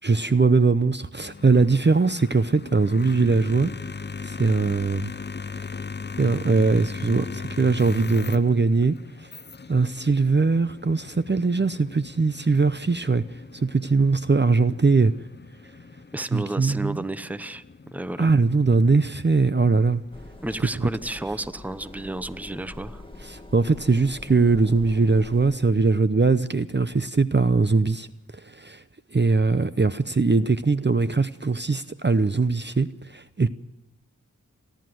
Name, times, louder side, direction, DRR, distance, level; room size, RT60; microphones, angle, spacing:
voice 1, 0.0-3.7 4.2-5.1 6.2-9.0 9.7-13.2 13.5-15.1 16.3-17.0 18.2-20.0 23.2-28.1 28.4-28.8 29.1-33.5, right 4 dB, 35° right, 0.7 m, -21 dB
sound 1, 1.2-20.3, left 4 dB, 35° left, 0.6 m, -39 dB
voice 2, 16.1-18.3 20.4-23.0, right 2 dB, 5° right, 0.8 m, -32 dB
sound 2, 20.1-25.5, left 2 dB, 15° left, 2.2 m, -43 dB
29.5 x 11.5 x 7.7 m
wide cardioid pair, 55°, 32 cm